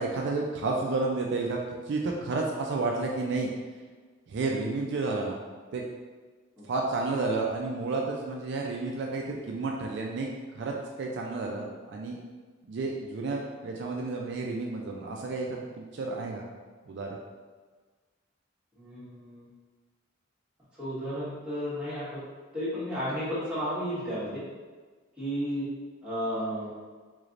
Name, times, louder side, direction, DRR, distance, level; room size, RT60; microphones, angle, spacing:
voice 1, 0.0-1.6 1.9-3.5 4.3-5.4 5.7-5.9 6.6-12.2 12.7-15.6 15.9-16.4 16.9-17.2, right 3 dB, 60° right, -1 dB, 0.4 m, -31 dB
voice 2, 18.8-19.5 20.8-22.2 22.5-24.4 25.2-25.7 26.0-26.7, equal, 5° right, -12 dB, 1.3 m, -33 dB
3.8 x 3.2 x 2.5 m, 1.4 s
head